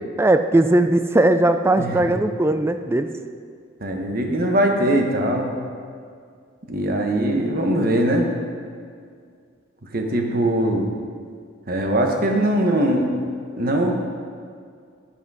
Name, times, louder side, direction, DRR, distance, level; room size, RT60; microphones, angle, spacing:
voice 1, 0.2-3.1, right 1 dB, 15° right, 9 dB, 0.3 m, -18 dB
voice 2, 3.8-5.5 6.7-8.3 9.9-10.9 11.7-13.1 13.6-13.9, right 1 dB, 50° right, 3 dB, 1.1 m, -21 dB
10.0 x 8.1 x 4.8 m, 2.2 s
head